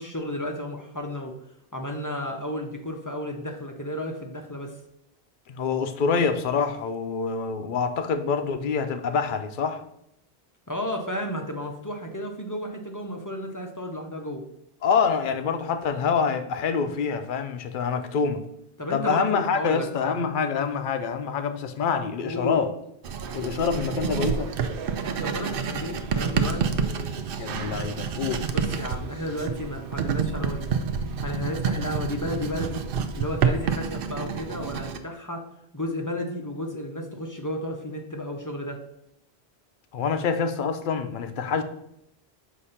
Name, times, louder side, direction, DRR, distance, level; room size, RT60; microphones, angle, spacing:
voice 1, 0.0-1.4 1.7-4.8 10.7-14.5 18.8-20.3 22.2-22.6 25.2-26.6 28.5-30.8 31.2-32.8 33.1-35.5 35.7-38.8, left 1 dB, 25° left, 0.5 m, -33 dB
voice 2, 5.5-9.8 14.8-18.4 18.9-22.7 23.3-24.5 27.4-28.5 39.9-41.6, left 5 dB, 60° left, 0.7 m, -26 dB
Writing, 23.0-35.0, right 6 dB, 65° right, 0.7 m, -28 dB
6.5 x 2.7 x 5.6 m
omnidirectional pair, 1.1 m